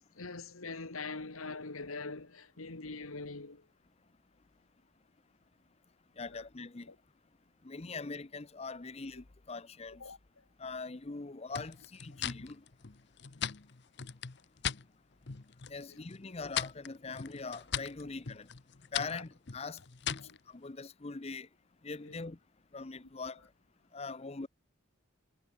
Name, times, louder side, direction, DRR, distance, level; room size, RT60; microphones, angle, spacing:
voice 1, 0.2-3.7 6.3-6.5 6.9-7.0 7.8-7.9 10.0-10.2 15.9-16.0 19.1-19.2 20.2-20.4 22.0-22.2, left 3 dB, 90° left, 1.9 m, -43 dB
voice 2, 6.2-6.9 7.6-10.0 10.6-12.6 15.7-18.5 18.9-19.8 20.1-20.2 20.5-21.5 21.8-22.4 22.7-23.4 23.9-24.5, left 4 dB, 30° left, 0.6 m, -42 dB
sound 1, 11.5-14.8 15.2-15.8 16.1-20.4, left 8 dB, 55° left, 0.9 m, -39 dB
head